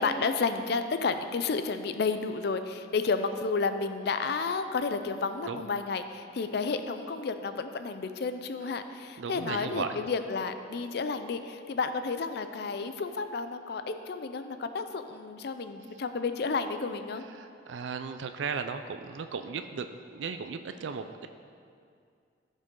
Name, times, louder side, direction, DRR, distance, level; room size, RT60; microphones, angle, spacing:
voice 1, 0.0-17.2, left 4 dB, 60° left, 9 dB, 0.4 m, -31 dB
voice 2, 9.2-10.1 17.3-21.3, right 5 dB, 85° right, 8 dB, 0.4 m, -36 dB
14.5 x 5.4 x 3.7 m, 2.3 s
head